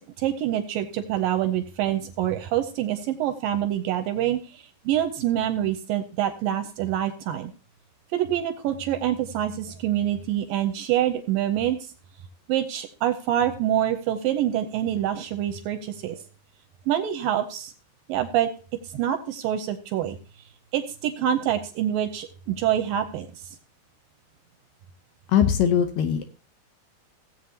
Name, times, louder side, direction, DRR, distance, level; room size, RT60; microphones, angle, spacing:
voice 1, 0.2-7.5 8.1-11.8 12.5-16.2 16.9-17.7 18.1-18.5 18.9-20.2 20.7-23.3, right 11 dB, 80° right, 8 dB, 2.2 m, -26 dB
voice 2, 25.3-26.3, left 9 dB, 75° left, 8 dB, 2.3 m, -21 dB
17.0 x 8.1 x 2.8 m, 0.34 s
omnidirectional pair, 4.5 m